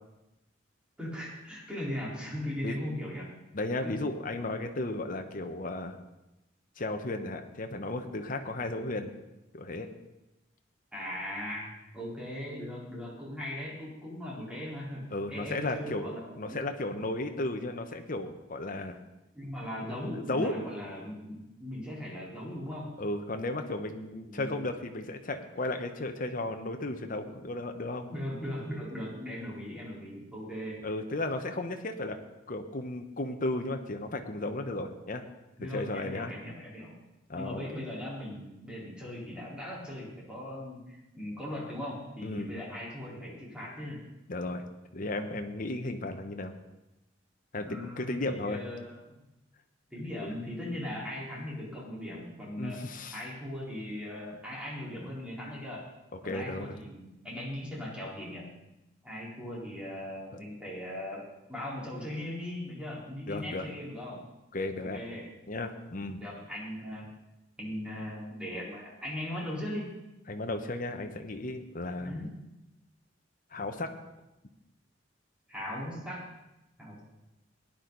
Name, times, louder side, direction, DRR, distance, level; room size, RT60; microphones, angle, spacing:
voice 1, 1.0-3.3 3.8-3.9 10.9-11.7 11.9-16.6 19.3-23.0 24.2-24.7 28.1-30.8 35.6-37.0 37.3-44.0 47.5-49.2 49.9-52.8 53.1-55.9 56.2-58.5 59.0-64.2 64.8-65.3 66.2-67.1 67.6-69.9 72.0-72.3 75.5-76.3 76.8-77.0, left 1 dB, 5° right, -6 dB, 4.2 m, -39 dB
voice 2, 3.5-6.0 6.8-9.1 9.5-9.9 15.1-16.1 16.4-19.0 20.3-20.5 23.0-28.1 30.8-32.2 32.5-35.3 35.6-36.3 37.3-37.6 42.2-42.5 44.3-44.6 44.9-46.5 47.5-48.6 52.6-53.2 56.1-56.7 60.3-60.4 63.3-63.6 64.5-65.0 65.5-66.2 70.3-72.2 73.5-73.9, left 2 dB, 45° left, 6 dB, 1.1 m, -34 dB
17.5 x 10.5 x 4.0 m, 0.96 s
head